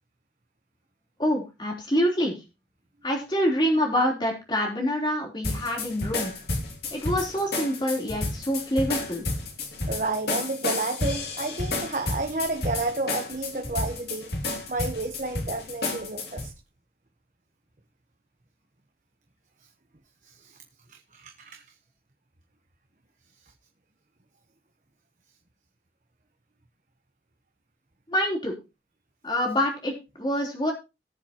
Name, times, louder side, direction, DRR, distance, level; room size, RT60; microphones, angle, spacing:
voice 1, 1.2-2.4 3.0-6.3 6.9-9.3 28.1-28.6 29.2-30.7, equal, 25° left, 3.5 m, -26 dB
sound 1, 5.4-16.5, left 2 dB, 65° left, 2.5 m, -31 dB
voice 2, 9.9-14.3 14.7-16.5 20.4-20.6 20.9-21.5, right 2 dB, 45° right, 1.0 m, -31 dB
19.0 x 7.3 x 2.9 m
head